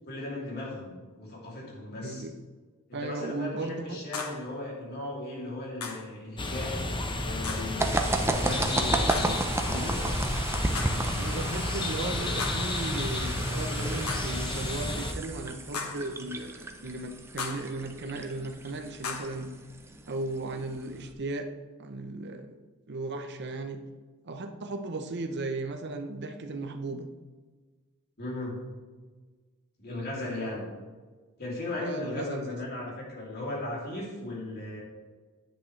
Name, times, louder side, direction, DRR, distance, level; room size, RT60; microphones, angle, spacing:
voice 1, 0.1-2.3 2.9-6.8 7.2-10.0 28.2-28.7 29.8-30.6 31.4-34.8, left 1 dB, 45° left, -3 dB, 2.9 m, -36 dB
voice 2, 2.0-2.3 2.9-4.0 11.2-19.5 20.1-21.5 21.8-22.6 22.9-23.8 24.2-27.1 31.8-32.6, right 2 dB, 50° right, 6 dB, 0.8 m, -36 dB
sound 1, 4.1-4.5 5.8-6.1 7.4-7.8 9.1-9.5 10.8-11.1 12.4-12.8 14.1-14.4 15.7-16.1 17.4-17.8 19.0-19.4, left 4 dB, 80° left, 1.3 m, -36 dB
sound 2, 6.4-15.1, left 2 dB, 20° left, 0.8 m, -31 dB
sound 3, 7.8-21.1, right 2 dB, 10° right, 0.6 m, -33 dB
10.0 x 8.3 x 3.2 m, 1.4 s
head